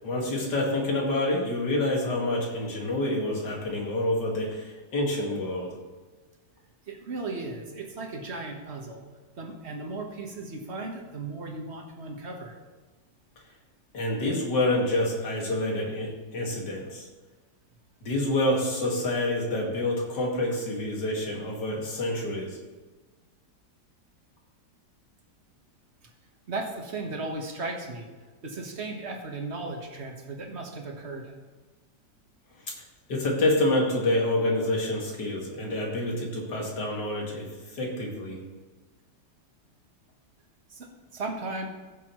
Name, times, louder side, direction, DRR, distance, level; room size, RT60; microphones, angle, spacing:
voice 1, 0.0-5.8 13.9-17.1 18.0-22.6 32.7-32.8 33.1-38.4, left 1 dB, 70° left, -2 dB, 2.6 m, -27 dB
voice 2, 6.9-9.0 9.4-12.6 26.0-26.1 26.5-28.1 28.4-31.3 40.7-41.7, right 3 dB, 40° right, 2 dB, 1.5 m, -36 dB
15.0 x 7.0 x 3.1 m, 1.3 s
omnidirectional pair, 1.9 m